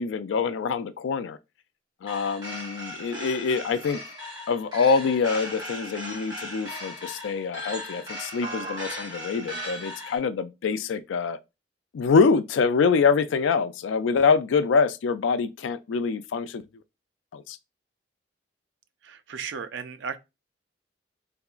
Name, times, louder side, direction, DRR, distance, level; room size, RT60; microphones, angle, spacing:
voice 1, 0.0-1.4 2.0-4.0 4.5-11.4 11.9-16.6 17.3-17.6, left 5 dB, 80° left, 0.3 m, -25 dB
sound 1, 2.1-10.2, equal, 20° right, 1.3 m, -37 dB
voice 2, 19.0-20.2, right 6 dB, 70° right, 0.4 m, -35 dB
3.5 x 2.8 x 2.4 m
head